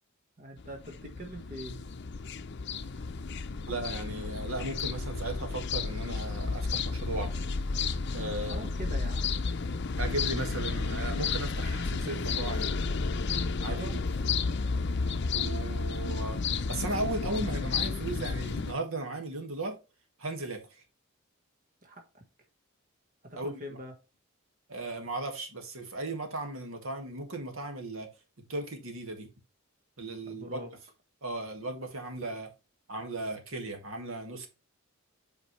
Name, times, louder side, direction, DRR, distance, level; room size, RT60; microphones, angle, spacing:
voice 1, 0.4-1.8 8.5-9.4 13.6-14.0 21.8-22.2 23.4-23.9 30.3-30.7, equal, 40° right, 1.5 m, -43 dB
sound 1, 0.6-18.7, left 4 dB, 55° left, 0.6 m, -32 dB
voice 2, 3.7-7.3 8.1-8.7 10.0-12.7 13.6-14.0 15.3-16.4 16.7-19.8 20.2-20.8 23.4-23.6 24.7-28.1 28.4-29.3 30.0-30.6 31.2-32.5 32.9-34.5, right 2 dB, 70° right, 2.0 m, -36 dB
8.2 x 5.0 x 3.2 m
head